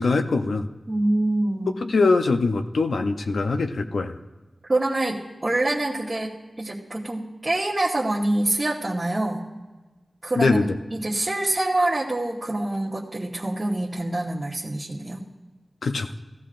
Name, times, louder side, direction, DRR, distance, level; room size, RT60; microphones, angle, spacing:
voice 1, 0.0-0.7 1.8-4.1 10.4-10.8 15.8-16.1, left 3 dB, 80° left, 7 dB, 0.6 m, -22 dB
voice 2, 0.9-1.8 4.7-9.4 10.2-10.6 10.9-15.2, right 1 dB, 30° right, -6 dB, 1.2 m, -25 dB
17.0 x 14.0 x 2.5 m, 1.2 s
wide cardioid pair, 95°, 0 cm